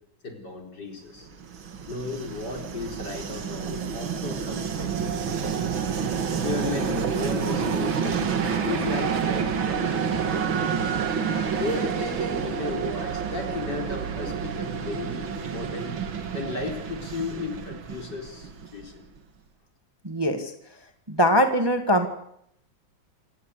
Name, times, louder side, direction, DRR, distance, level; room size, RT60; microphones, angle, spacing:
voice 1, 0.2-1.3 1.9-5.4 5.7-5.8 6.4-8.3 8.7-11.2 11.5-16.0 16.3-19.0, left 3 dB, 55° left, 3 dB, 5.0 m, -35 dB
Train, 1.3-19.0, right 6 dB, 70° right, 2.6 m, -29 dB
voice 2, 20.0-20.5 21.1-22.1, equal, 15° right, 6 dB, 1.8 m, -22 dB
28.0 x 17.0 x 8.4 m, 0.73 s
omnidirectional pair, 2.2 m